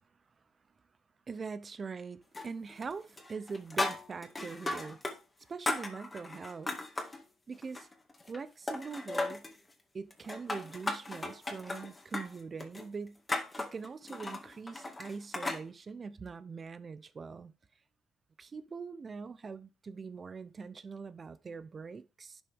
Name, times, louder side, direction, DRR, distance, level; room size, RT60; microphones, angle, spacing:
voice 1, 1.3-5.0 5.5-6.7 7.5-7.9 8.3-9.5 9.9-13.2 13.6-17.5 18.4-22.4, right 5 dB, 40° right, 0.8 m, -42 dB
sound 1, 2.3-2.9 3.2-5.2 5.4-7.2 7.6-8.4 8.7-9.6 10.1-15.6, left 2 dB, 20° left, 2.1 m, -36 dB
11.0 x 6.2 x 3.6 m
cardioid pair, 90°, 0 cm